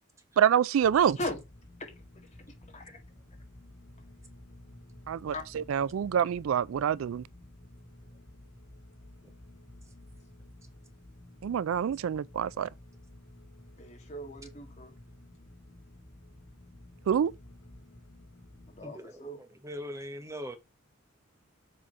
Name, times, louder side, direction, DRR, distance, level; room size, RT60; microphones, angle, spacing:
voice 1, 0.4-1.2 5.1-7.2 11.4-12.7 17.1-17.3, right 8 dB, 80° right, 0.3 m, -26 dB
sound 1, 0.8-18.8, left 1 dB, 60° left, 2.2 m, -52 dB
voice 2, 13.8-14.9 18.7-19.4, left 1 dB, 30° left, 2.2 m, -38 dB
voice 3, 18.8-20.6, equal, 15° right, 1.0 m, -41 dB
7.6 x 3.6 x 5.4 m
head